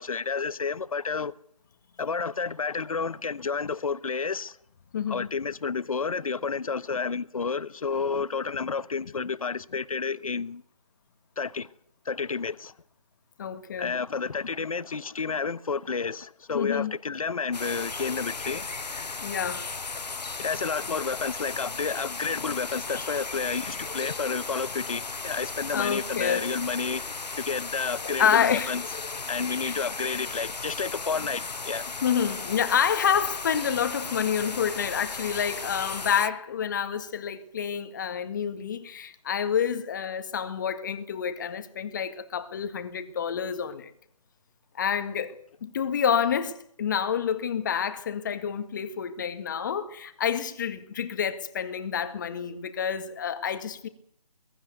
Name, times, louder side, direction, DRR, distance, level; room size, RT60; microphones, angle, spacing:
voice 1, 0.0-1.3 2.0-4.6 5.1-10.6 11.4-11.7 12.0-12.7 13.8-18.6 20.4-27.0 27.4-28.8 29.3-31.9, left 5 dB, 55° left, 1.2 m, -30 dB
voice 2, 4.9-5.3 13.4-14.0 16.5-16.9 19.2-19.7 25.7-26.5 28.2-28.8 29.6-29.7 32.0-43.9 44.7-45.4 45.6-53.9, left 8 dB, 30° left, 1.8 m, -28 dB
sound 1, 17.5-36.3, left 4 dB, 80° left, 1.1 m, -36 dB
22.5 x 13.0 x 9.5 m
figure-of-eight pair, 160°, 21 cm